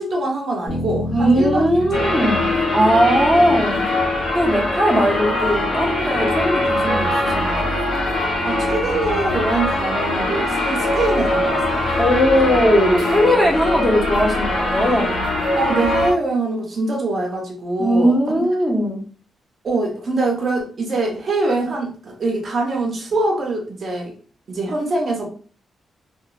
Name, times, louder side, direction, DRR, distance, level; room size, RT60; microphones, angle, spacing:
voice 1, 0.0-2.1 3.3-3.6 8.4-11.9 15.5-18.4 19.6-24.1 24.5-25.2, right 2 dB, 40° right, 1 dB, 0.5 m, -24 dB
sound 1, 0.7-5.0, left 1 dB, 30° left, 1.0 m, -31 dB
voice 2, 1.1-3.8 4.3-7.7 12.0-15.2 17.8-19.0, equal, 5° left, -2 dB, 0.6 m, -19 dB
sound 2, 1.9-16.1, left 1 dB, 75° left, 0.8 m, -21 dB
2.9 x 2.1 x 2.3 m, 0.42 s
wide cardioid pair, 175°, 0 cm